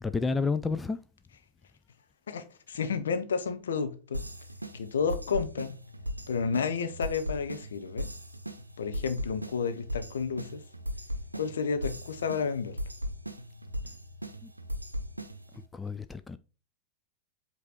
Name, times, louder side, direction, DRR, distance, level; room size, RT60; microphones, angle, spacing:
voice 1, 0.0-1.0 14.4-14.5 15.7-16.4, left 4 dB, 10° left, 0.3 m, -30 dB
voice 2, 2.3-4.2 4.7-5.7 6.3-8.1 8.8-10.6 11.3-12.8, left 5 dB, 65° left, 0.9 m, -31 dB
sound 1, 4.1-15.6, equal, 85° right, 0.6 m, -38 dB
8.0 x 3.1 x 4.3 m
figure-of-eight pair, 90°, 0 cm